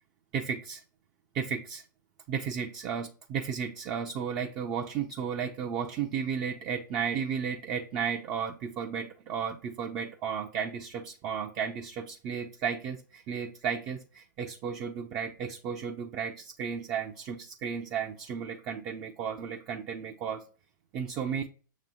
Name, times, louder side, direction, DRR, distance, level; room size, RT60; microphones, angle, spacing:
voice 1, 0.3-0.8 1.3-1.8 2.3-20.4 20.9-21.4, right 7 dB, 30° right, 2 dB, 0.6 m, -34 dB
7.3 x 3.1 x 5.4 m, 0.39 s
figure-of-eight pair, 105°, 11 cm